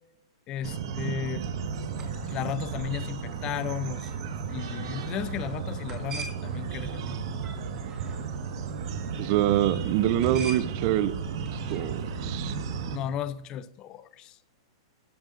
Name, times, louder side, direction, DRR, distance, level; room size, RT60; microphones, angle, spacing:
voice 1, 0.5-1.5 2.3-4.1 4.5-7.2 12.9-14.4, left 10 dB, 30° left, 0.5 m, -34 dB
sound 1, 0.6-13.0, right 6 dB, 60° right, 1.5 m, -34 dB
sound 2, 1.7-13.1, right 3 dB, 20° right, 2.1 m, -46 dB
voice 2, 9.2-11.1 11.5-12.5, right 12 dB, 40° right, 0.6 m, -25 dB
13.0 x 10.5 x 2.5 m
hypercardioid pair, 150°, 3 cm